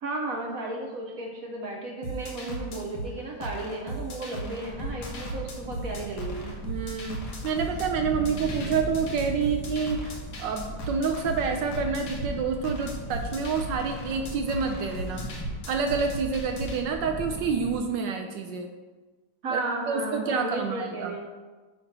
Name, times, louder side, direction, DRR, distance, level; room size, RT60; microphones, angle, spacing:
voice 1, 0.0-6.5 19.4-21.2, right 2 dB, 55° right, 0 dB, 1.0 m, -34 dB
sound 1, 2.0-16.8, right 1 dB, 75° left, 1.9 m, -37 dB
Thunder, 4.6-17.8, equal, 15° left, 0.5 m, -39 dB
voice 2, 6.6-15.2 15.7-18.7 19.5-21.2, right 5 dB, 75° right, 4 dB, 1.1 m, -28 dB
8.8 x 3.1 x 5.8 m, 1.3 s
omnidirectional pair, 2.4 m